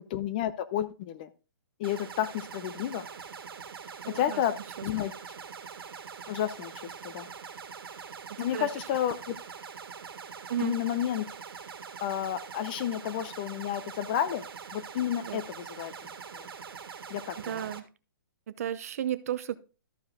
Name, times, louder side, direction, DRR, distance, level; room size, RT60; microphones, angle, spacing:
voice 1, 0.1-1.3 1.8-3.0 4.1-4.5 4.8-5.1 6.3-6.7 7.0-7.3 8.4-9.4 10.6-11.3 12.0-14.4 14.7-15.9 16.3-16.5 17.1-17.4, left 10 dB, 25° left, 0.5 m, -31 dB
sound 1, 1.8-17.8, right 6 dB, 85° right, 1.7 m, -43 dB
voice 2, 4.0-4.4 4.8-4.9 8.3-8.7 10.5-10.8 15.2-15.4 17.4-17.9 18.5-19.6, right 10 dB, 40° right, 0.6 m, -33 dB
13.5 x 4.9 x 3.6 m
hypercardioid pair, 170°, 12 cm